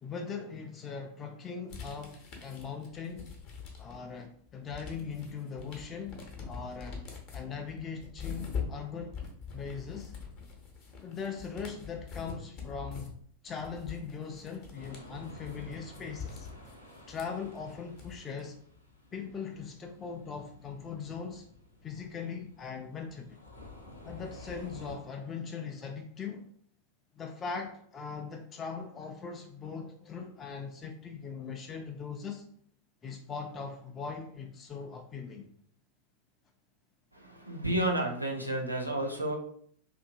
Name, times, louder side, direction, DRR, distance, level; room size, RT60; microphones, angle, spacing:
voice 1, 0.0-3.3 3.8-6.2 6.5-9.2 9.5-10.1 11.0-13.1 13.4-16.5 17.1-18.6 19.1-21.5 21.8-23.4 24.0-26.5 27.1-32.5 33.0-35.5, left 5 dB, 25° left, 0.3 m, -40 dB
sound 1, 1.7-4.1 4.5-18.4, left 5 dB, 45° left, 0.7 m, -43 dB
sound 2, 14.7-24.9, left 1 dB, 85° left, 0.6 m, -52 dB
voice 2, 37.1-39.4, right 1 dB, 85° right, 0.5 m, -31 dB
2.6 x 2.6 x 2.6 m
figure-of-eight pair, 90°, 0 cm